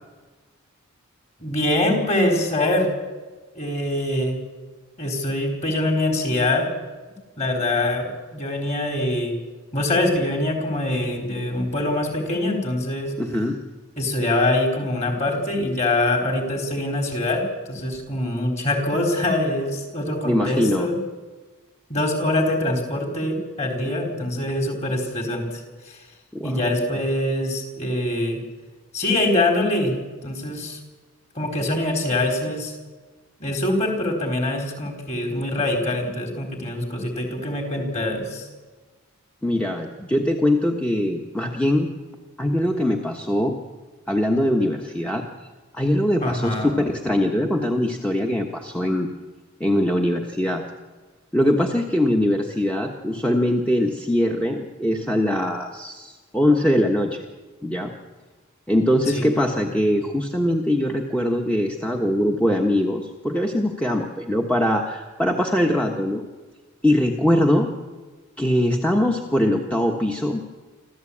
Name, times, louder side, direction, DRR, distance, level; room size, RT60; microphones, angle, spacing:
voice 1, 1.4-2.9 3.5-4.4 5.0-6.7 7.4-9.4 9.7-13.1 14.0-21.0 21.9-25.4 25.9-26.0 26.4-28.4 28.9-29.9 30.2-30.8 31.3-32.8 33.4-38.5 46.2-46.8 59.1-59.3, left 1 dB, 30° left, 2 dB, 4.3 m, -24 dB
voice 2, 13.2-13.6 20.2-20.9 26.3-26.6 39.4-41.9 42.4-43.6 44.1-45.2 45.7-49.1 49.6-50.6 51.3-57.2 57.6-57.9 58.7-66.2 66.8-67.7 68.4-70.5, left 1 dB, 5° left, 1 dB, 1.3 m, -22 dB
26.0 x 14.0 x 8.7 m, 1.3 s
head